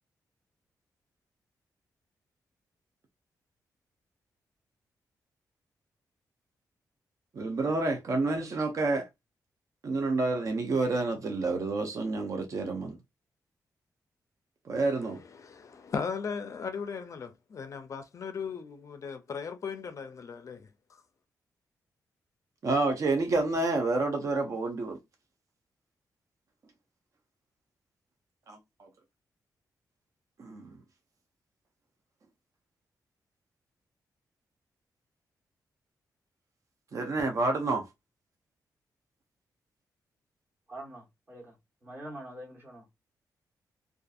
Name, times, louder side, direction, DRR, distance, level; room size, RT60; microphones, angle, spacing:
voice 1, 7.3-9.1 9.8-13.0 14.7-15.2 22.6-25.0 28.5-28.9 30.4-30.8 36.9-37.9, right 3 dB, 50° right, 0.5 m, -29 dB
voice 2, 14.9-21.0, left 6 dB, 50° left, 0.4 m, -38 dB
voice 3, 40.7-41.5 41.8-42.9, right 1 dB, 30° right, 1.2 m, -45 dB
2.5 x 2.4 x 2.3 m
cardioid pair, 95°, 7 cm